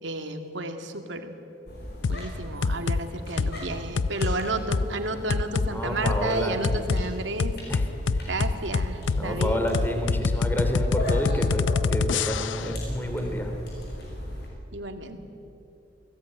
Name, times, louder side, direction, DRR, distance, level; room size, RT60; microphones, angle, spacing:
voice 1, 0.0-1.4 2.1-7.6 8.2-9.6 14.7-15.2, right 2 dB, 75° right, 5 dB, 2.4 m, -32 dB
sound 1, 1.7-14.5, equal, 60° left, 6.3 m, -37 dB
sound 2, 2.0-2.2 2.6-3.0 3.4-3.6 4.0-4.4 4.7-4.9 5.3-5.7 6.1-6.2 6.6-7.0 7.4-12.7, left 4 dB, 85° left, 0.6 m, -25 dB
voice 2, 5.7-6.8 7.7-7.8 8.1-8.3 9.1-13.5, equal, 10° left, 4 dB, 2.9 m, -29 dB
28.5 x 18.0 x 9.2 m, 3.0 s
head